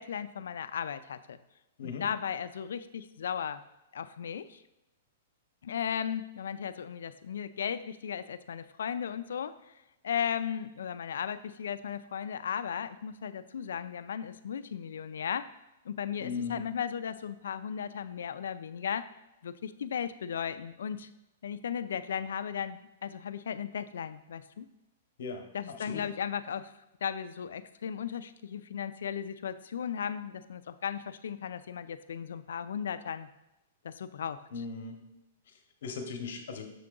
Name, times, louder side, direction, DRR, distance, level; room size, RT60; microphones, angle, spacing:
voice 1, 0.0-1.4 1.8-3.6 3.9-4.6 5.6-9.7 10.0-15.5 15.8-19.1 19.4-21.1 21.4-24.7 25.5-26.7 27.0-33.3 33.8-34.4, left 8 dB, 85° left, 13 dB, 0.3 m, -36 dB
voice 2, 16.2-16.6 25.2-26.1 34.5-35.0 35.5-36.7, left 5 dB, 60° left, 6 dB, 0.8 m, -39 dB
6.7 x 3.8 x 3.7 m, 0.94 s
hypercardioid pair, 175°, 0 cm